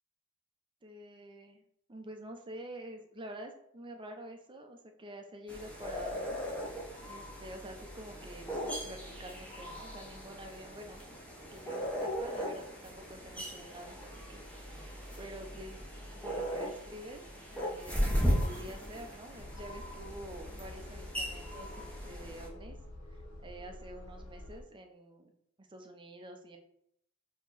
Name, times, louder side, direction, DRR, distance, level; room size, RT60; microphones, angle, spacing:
voice 1, 0.8-11.0 11.5-15.8 16.1-17.2 17.5-22.8 23.1-25.3 25.6-26.6, right 1 dB, 20° right, 4 dB, 0.6 m, -48 dB
sound 1, 5.5-22.5, equal, 5° left, 0.8 m, -38 dB
sound 2, 19.3-24.6, left 1 dB, 75° left, 0.7 m, -48 dB
4.4 x 2.9 x 4.0 m, 0.72 s
head